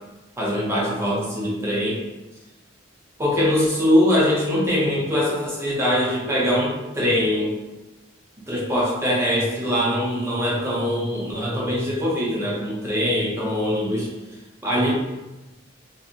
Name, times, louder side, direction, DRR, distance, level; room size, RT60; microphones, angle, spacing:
voice 1, 0.4-2.0 3.2-7.6 8.5-14.1 14.6-14.9, equal, 15° right, -6 dB, 0.6 m, -22 dB
2.7 x 2.6 x 2.4 m, 1.1 s
head